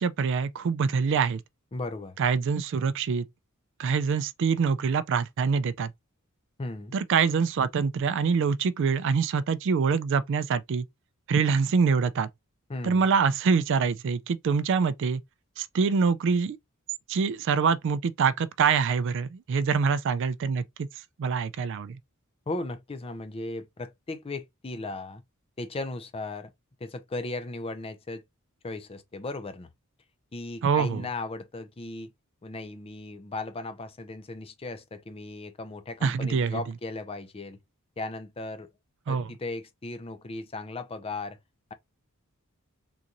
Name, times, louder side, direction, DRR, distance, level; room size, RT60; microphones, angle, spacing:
voice 1, 0.0-1.4 2.2-3.2 3.8-5.9 6.9-10.9 11.3-12.3 12.8-15.2 15.6-16.6 17.1-20.9 21.2-22.0 30.6-31.0 36.0-36.6 39.1-39.3, right 5 dB, 55° right, 0.3 m, -25 dB
voice 2, 1.7-2.2 6.6-6.9 12.7-13.1 22.5-25.2 25.6-26.5 26.8-28.2 28.6-29.7 30.3-32.1 32.4-37.6 38.0-38.7 39.1-41.4, left 2 dB, 25° left, 0.5 m, -36 dB
3.7 x 2.5 x 2.9 m
head